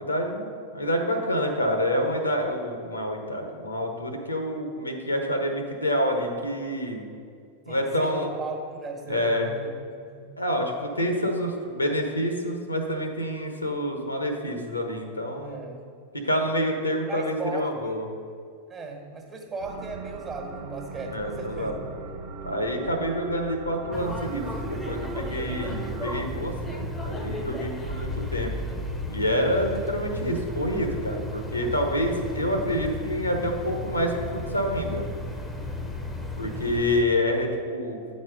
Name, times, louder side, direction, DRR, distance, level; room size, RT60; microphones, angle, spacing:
voice 1, 0.0-7.1 7.7-8.3 9.1-9.5 10.4-15.6 16.1-18.1 21.1-21.8 22.4-28.5 29.1-35.0 36.4-38.0, equal, 85° left, 4 dB, 1.0 m, -27 dB
voice 2, 7.7-9.7 10.1-10.3 15.4-15.8 17.1-18.0 18.7-21.8, right 3 dB, 25° right, 0 dB, 1.3 m, -37 dB
sound 1, 19.6-26.2, right 5 dB, 50° right, 1.0 m, -40 dB
sound 2, 23.9-37.0, left 1 dB, 10° left, 0.8 m, -34 dB
9.1 x 4.2 x 5.2 m, 2.3 s
figure-of-eight pair, 90°, 0 cm